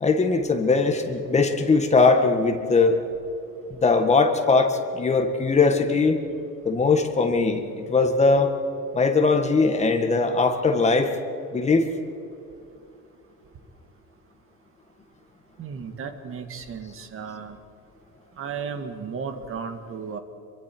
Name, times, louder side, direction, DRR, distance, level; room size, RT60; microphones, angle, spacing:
voice 1, 0.0-3.0 3.7-6.2 6.7-8.5 8.9-11.1 11.5-11.9, left 4 dB, 20° left, 5 dB, 1.7 m, -20 dB
voice 2, 15.6-17.6 18.4-20.2, right 6 dB, 45° right, 7 dB, 1.9 m, -34 dB
26.5 x 23.0 x 4.6 m, 2.7 s
cardioid pair, 155°, 31 cm